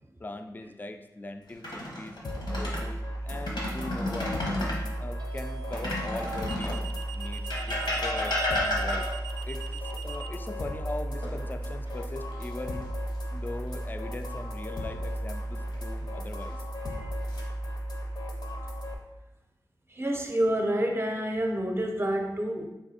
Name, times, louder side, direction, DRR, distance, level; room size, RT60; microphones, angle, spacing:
voice 1, 0.2-2.2 2.6-4.3 5.0-9.1 9.5-12.9 13.3-16.6, left 2 dB, 25° left, 7 dB, 0.3 m, -40 dB
sound 1, 1.5-2.9 3.3-4.8 5.7-6.9 7.5-9.3 11.2-11.9 12.3-12.5 15.4-16.0 16.8-17.4, left 1 dB, 80° left, 1.1 m, -32 dB
sound 2, 1.9-2.2 5.2-10.3, right 7 dB, 70° right, 0.4 m, -42 dB
sound 3, 2.2-18.9, equal, 65° left, 0.7 m, -35 dB
voice 2, 19.9-22.7, right 1 dB, 30° right, 3 dB, 0.6 m, -28 dB
3.5 x 3.1 x 4.1 m, 1.0 s
wide cardioid pair, 80°, 8 cm